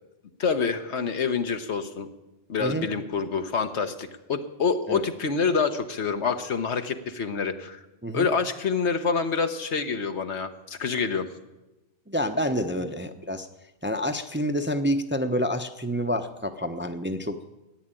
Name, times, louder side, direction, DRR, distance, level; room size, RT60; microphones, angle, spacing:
voice 1, 0.4-2.1 2.5-7.8 8.1-11.3, left 5 dB, 75° left, 8 dB, 1.4 m, -27 dB
voice 2, 12.1-13.5 13.8-17.4, equal, 10° right, 6 dB, 0.6 m, -28 dB
15.0 x 9.8 x 9.0 m, 1.0 s
omnidirectional pair, 1.2 m